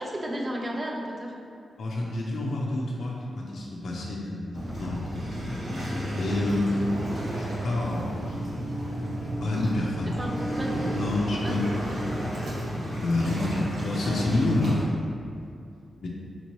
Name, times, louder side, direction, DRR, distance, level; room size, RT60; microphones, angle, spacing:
voice 1, 0.0-1.3 10.2-10.7 11.4-11.9, equal, 25° right, 0 dB, 0.4 m, -33 dB
voice 2, 1.8-5.5 6.1-6.8 7.3-8.4 9.4-10.2 10.9-12.3 13.0-14.8 16.0-16.1, left 2 dB, 65° left, -3 dB, 0.5 m, -29 dB
Waves surf, 4.5-14.8, equal, 75° right, 1.0 m, -31 dB
4.2 x 2.9 x 3.0 m, 2.4 s
wide cardioid pair, 170°, 0 cm